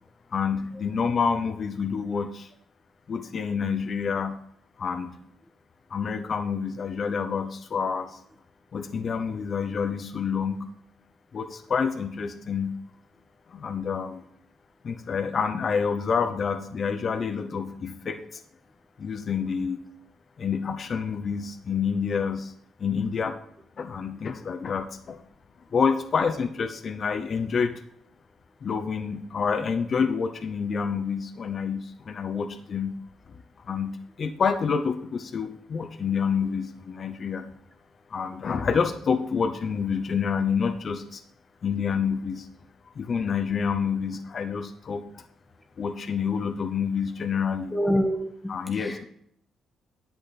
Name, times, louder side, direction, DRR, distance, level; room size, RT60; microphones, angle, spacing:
voice 1, 0.3-2.5 3.1-4.4 4.8-5.1 5.9-8.2 8.7-10.7 11.3-12.8 13.5-14.2 14.8-18.4 19.0-19.8 20.4-22.5 22.8-23.4 23.8-25.2 25.7-27.8 28.6-33.0 33.7-37.4 38.1-41.2 41.6-42.5 42.9-45.2 45.8-47.7 48.5-49.0, left 6 dB, 50° left, 7 dB, 0.8 m, -28 dB
voice 2, 47.7-48.5 48.8-49.0, equal, 5° left, 3 dB, 1.4 m, -26 dB
10.5 x 7.7 x 4.2 m, 0.71 s
cardioid pair, 90°, 0 cm